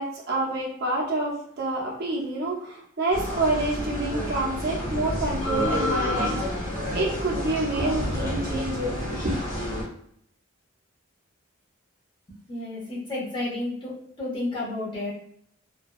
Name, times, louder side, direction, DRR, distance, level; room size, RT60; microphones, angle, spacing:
voice 1, 0.0-9.3, right 2 dB, 50° right, -3 dB, 0.7 m, -28 dB
sound 1, 3.1-9.8, left 1 dB, 75° left, 1.2 m, -29 dB
voice 2, 12.3-15.1, left 2 dB, 25° left, -7 dB, 0.8 m, -32 dB
2.5 x 2.3 x 2.3 m, 0.68 s
head